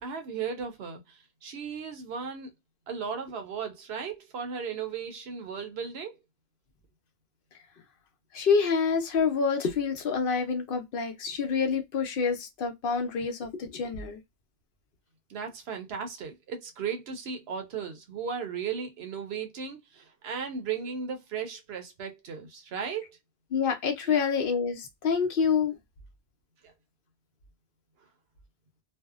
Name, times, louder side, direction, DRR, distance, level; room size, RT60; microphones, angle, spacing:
voice 1, 0.0-2.5 2.9-6.2 15.3-23.2 24.0-24.3 26.6-26.7, right 6 dB, 80° right, 0.9 m, -36 dB
voice 2, 8.3-14.2 23.5-25.8, left 5 dB, 65° left, 0.7 m, -27 dB
2.6 x 2.0 x 2.3 m
omnidirectional pair, 1.0 m